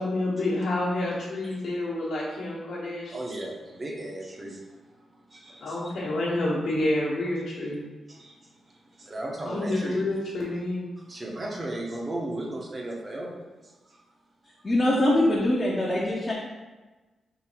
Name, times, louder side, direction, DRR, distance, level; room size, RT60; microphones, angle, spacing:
voice 1, 0.0-3.2 5.6-7.8 9.5-10.9, left 1 dB, 65° left, -8 dB, 1.0 m, -28 dB
voice 2, 3.1-5.9 8.1-10.0 11.0-13.5, right 1 dB, 25° right, -2 dB, 0.7 m, -36 dB
voice 3, 14.6-16.3, left 1 dB, 20° left, -5 dB, 0.6 m, -23 dB
3.8 x 2.6 x 4.2 m, 1.2 s
wide cardioid pair, 150°, 0 cm